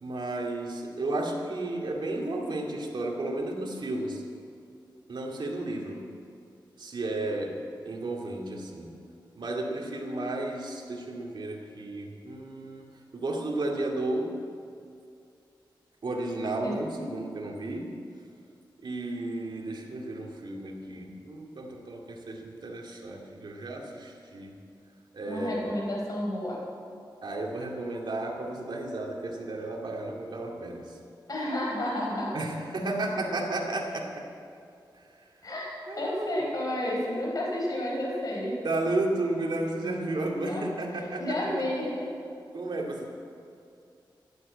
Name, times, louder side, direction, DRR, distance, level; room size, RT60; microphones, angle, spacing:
voice 1, 0.0-4.2 5.1-6.0 6.8-7.6 7.8-8.9 9.4-14.3 16.0-17.9 18.8-24.6 25.1-25.8 27.2-30.9 32.3-34.2 35.9-36.3 38.6-41.6 42.5-43.1, right 2 dB, 65° right, 0 dB, 2.4 m, -33 dB
voice 2, 25.3-26.6 31.3-32.3 35.4-38.6 40.4-40.6 41.0-41.9, left 1 dB, 45° left, -3 dB, 4.6 m, -31 dB
12.0 x 11.0 x 8.6 m, 2.5 s
cardioid pair, 75°, 8 cm